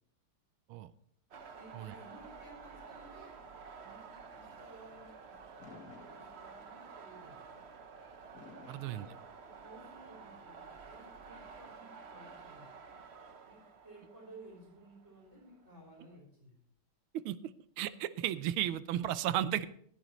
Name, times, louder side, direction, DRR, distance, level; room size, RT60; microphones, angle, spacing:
sound 1, 1.3-16.2, right 5 dB, 50° right, 0.7 m, -52 dB
voice 1, 1.5-3.4 3.8-7.4 8.6-9.1 9.6-12.7 13.4-13.6 13.8-16.6, right 2 dB, 30° right, -4 dB, 5.5 m, -56 dB
Fireworks, 5.6-6.9 8.3-9.9, left 5 dB, 45° left, 1.5 m, -55 dB
voice 2, 8.7-9.1 17.1-17.4 17.8-19.7, right 12 dB, 80° right, 15 dB, 1.5 m, -34 dB
20.5 x 9.2 x 3.1 m, 0.64 s
omnidirectional pair, 2.4 m